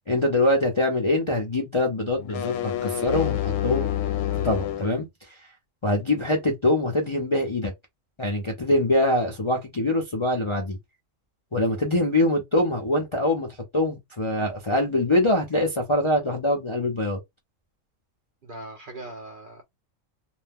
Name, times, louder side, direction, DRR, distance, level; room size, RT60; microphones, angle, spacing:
voice 1, 0.1-3.9 4.4-5.1 5.8-7.7 8.2-10.8 11.5-17.2, left 1 dB, 35° left, 0.5 m, -24 dB
sound 1, 2.2-5.0, left 11 dB, 75° left, 0.9 m, -28 dB
voice 2, 18.4-19.6, right 1 dB, 50° right, 0.6 m, -40 dB
2.5 x 2.1 x 3.4 m
omnidirectional pair, 1.4 m